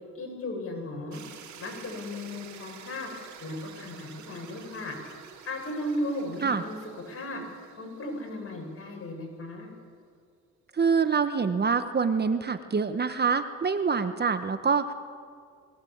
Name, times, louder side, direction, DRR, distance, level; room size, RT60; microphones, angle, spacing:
voice 1, 0.2-1.2 1.6-3.1 3.4-5.0 5.5-6.8 7.1-7.4 7.8-9.7, left 1 dB, 50° left, 1 dB, 6.9 m, -35 dB
sound 1, 1.1-9.1, right 8 dB, 70° right, 3.0 m, -49 dB
voice 2, 10.7-14.9, right 5 dB, 35° right, 10 dB, 1.1 m, -25 dB
22.0 x 17.0 x 8.7 m, 2.2 s
cardioid pair, 90°, 30 cm